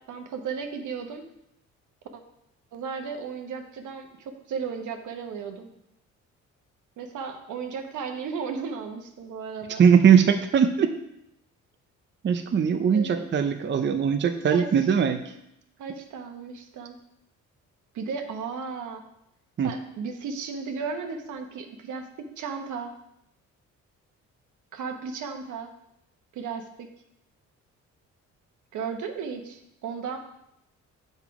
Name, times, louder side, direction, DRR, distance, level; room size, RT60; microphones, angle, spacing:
voice 1, 0.1-1.2 2.1-2.2 2.7-5.7 7.0-9.8 12.9-13.3 14.5-14.9 15.8-17.0 17.9-19.0 19.6-22.9 24.7-25.7 26.3-26.6 28.7-30.2, right 5 dB, 80° right, 5 dB, 1.1 m, -35 dB
voice 2, 9.8-11.0 12.2-15.2 19.6-19.7, right 7 dB, 40° right, 7 dB, 0.6 m, -20 dB
7.3 x 5.4 x 4.8 m, 0.80 s
cardioid pair, 90°, 30 cm